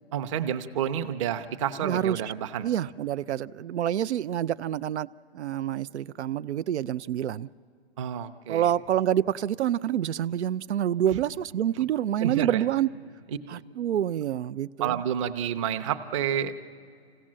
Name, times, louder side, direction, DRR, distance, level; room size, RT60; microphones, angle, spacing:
voice 1, 0.1-2.7 8.0-8.7 12.2-12.6 14.8-16.5, right 9 dB, 30° right, 8 dB, 0.7 m, -29 dB
voice 2, 1.8-2.2 2.6-5.1 5.3-7.5 8.5-12.9 13.5-15.0, right 11 dB, 85° right, 14 dB, 0.5 m, -27 dB
26.0 x 16.5 x 7.5 m, 2.1 s
hypercardioid pair, 155°, 33 cm